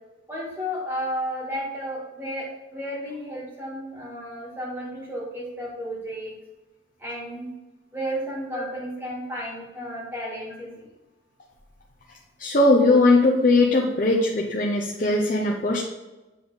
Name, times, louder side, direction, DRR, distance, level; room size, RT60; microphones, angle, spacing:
voice 1, 0.3-6.3 7.0-7.5 7.9-10.9, equal, 10° right, -6 dB, 2.0 m, -33 dB
voice 2, 12.4-15.8, left 2 dB, 40° left, -2 dB, 0.6 m, -19 dB
7.8 x 3.6 x 4.0 m, 1.1 s
head